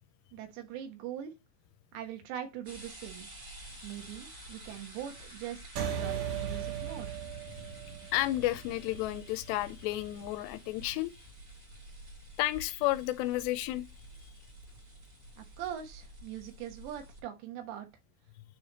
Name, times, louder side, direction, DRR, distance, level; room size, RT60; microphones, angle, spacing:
voice 1, 0.3-1.3 1.9-3.3 3.8-7.2 15.4-17.9, right 10 dB, 85° right, 3.4 m, -42 dB
sound 1, 2.6-17.2, right 1 dB, 35° right, 1.3 m, -50 dB
sound 2, 5.8-10.6, right 8 dB, 70° right, 2.7 m, -38 dB
voice 2, 8.1-11.1 12.4-13.8, left 16 dB, 90° left, 2.7 m, -31 dB
9.4 x 3.3 x 4.1 m
omnidirectional pair, 4.9 m